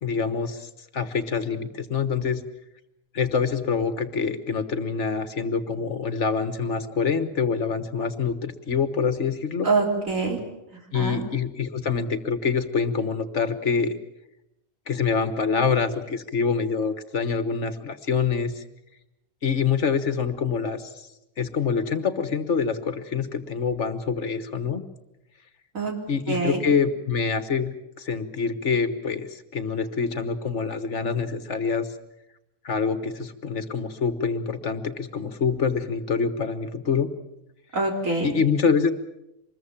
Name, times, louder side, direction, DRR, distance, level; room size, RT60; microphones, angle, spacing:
voice 1, 0.0-2.4 3.1-9.7 10.9-13.9 14.9-18.6 19.4-21.1 21.4-24.8 26.1-31.9 32.6-37.1 38.2-38.9, left 5 dB, 60° left, 11 dB, 1.6 m, -26 dB
voice 2, 9.6-10.4 10.9-11.2 25.7-25.9 26.3-26.6 37.7-38.3, right 3 dB, 70° right, 1 dB, 4.2 m, -24 dB
25.5 x 21.5 x 7.3 m, 0.88 s
omnidirectional pair, 1.4 m